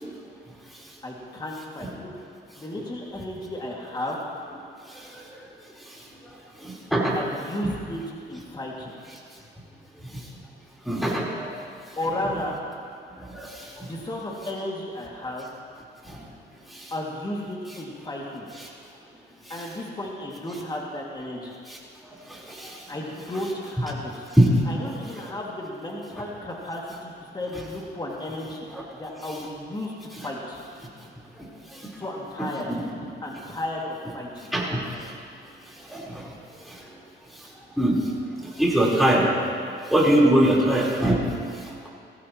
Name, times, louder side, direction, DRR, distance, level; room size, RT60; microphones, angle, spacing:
voice 1, 1.0-2.1 2.6-4.2 7.1-8.0 8.3-8.9 12.0-12.6 13.9-15.5 16.9-18.5 19.5-21.6 22.9-24.3 24.7-30.6 32.0-32.7 33.2-34.5, left 1 dB, 20° left, -3 dB, 2.3 m, -33 dB
voice 2, 6.6-7.2 7.6-7.7 10.8-11.5 13.3-13.9 16.1-16.2 16.7-16.9 21.7-21.8 22.3-22.8 24.4-24.5 28.7-28.8 31.7-31.8 32.7-32.8 34.5-35.0 35.9-36.3 36.7-36.8 37.8-38.0 38.4-39.3 39.9-41.3, right 1 dB, ahead, -6 dB, 4.1 m, -22 dB
18.5 x 15.5 x 3.1 m, 2.3 s
cardioid pair, 90°, 20 cm